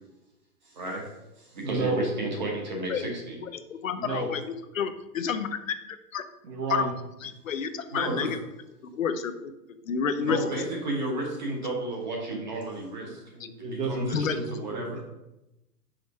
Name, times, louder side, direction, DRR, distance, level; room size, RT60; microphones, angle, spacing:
voice 1, 0.6-1.1 1.4-3.4 7.9-8.4 10.2-13.2 13.9-15.0, right 2 dB, 30° right, -1 dB, 1.0 m, -32 dB
voice 2, 1.6-2.1 3.9-4.3 6.4-6.9 13.1-15.0, right 2 dB, 85° right, 0 dB, 1.9 m, -32 dB
voice 3, 3.4-4.4 4.8-6.2 6.7-6.9 7.2-8.4 8.9-9.5 9.8-10.4 14.1-14.4, left 7 dB, 55° left, 10 dB, 0.6 m, -29 dB
5.0 x 4.1 x 4.6 m, 0.93 s
hypercardioid pair, 170°, 48 cm